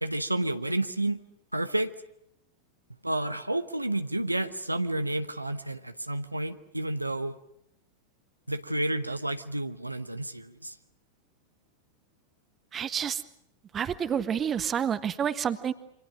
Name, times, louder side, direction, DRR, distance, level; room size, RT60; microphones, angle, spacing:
voice 1, 0.0-1.2 1.5-1.9 3.0-7.3 8.5-10.7, right 1 dB, 85° right, 10 dB, 1.1 m, -30 dB
voice 2, 12.7-13.2 13.7-15.7, right 8 dB, 25° right, 13 dB, 1.4 m, -29 dB
28.5 x 25.5 x 6.4 m, 0.77 s
figure-of-eight pair, 90°, 0 cm